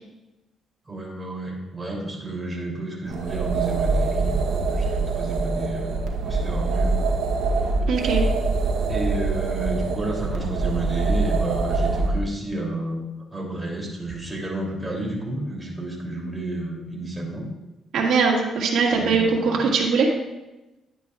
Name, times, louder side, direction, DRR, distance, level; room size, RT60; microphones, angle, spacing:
voice 1, 0.9-5.9 6.2-6.9 8.9-17.5 18.9-19.6, right 2 dB, 10° right, -2 dB, 2.9 m, -31 dB
sound 1, 3.1-12.2, right 3 dB, 90° right, 0.9 m, -24 dB
voice 2, 7.9-8.2 17.9-20.1, right 5 dB, 70° right, -2 dB, 1.9 m, -21 dB
10.0 x 9.3 x 2.4 m, 1.0 s
cardioid pair, 90°, 0 cm